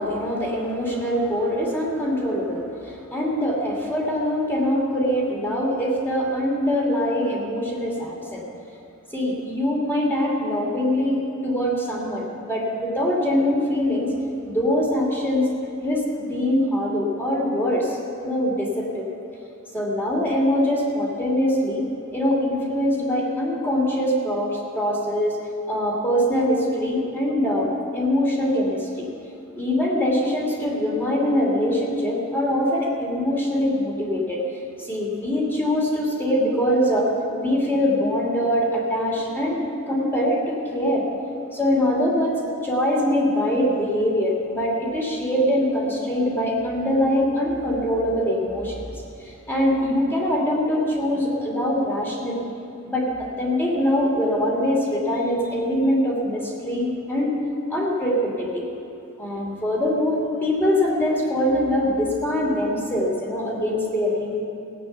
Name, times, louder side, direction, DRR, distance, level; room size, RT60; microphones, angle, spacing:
voice 1, 0.0-8.4 9.1-14.1 14.5-15.5 15.8-19.1 19.7-21.8 22.1-25.4 25.7-29.1 29.5-34.4 34.8-37.1 37.3-41.1 41.5-42.3 42.6-48.9 49.2-52.4 52.9-57.4 57.7-58.6 59.2-64.4, equal, 10° left, -3 dB, 2.7 m, -23 dB
17.0 x 9.0 x 7.0 m, 2.6 s
head